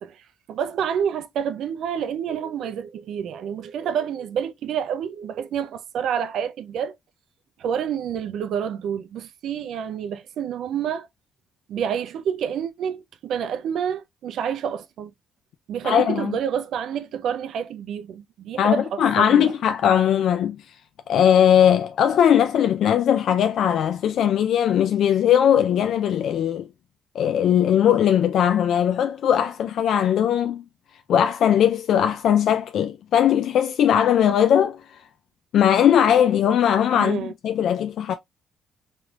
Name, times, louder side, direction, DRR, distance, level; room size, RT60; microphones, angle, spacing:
voice 1, 0.0-6.9 7.6-11.1 11.7-15.1 15.7-19.5 36.9-37.3, right 8 dB, 75° right, 0.4 m, -28 dB
voice 2, 15.8-16.4 18.6-20.6 21.1-26.7 27.2-30.6 31.1-34.8 35.5-38.1, left 9 dB, 70° left, 0.3 m, -19 dB
3.2 x 3.1 x 2.3 m
cardioid pair, 90°, 0 cm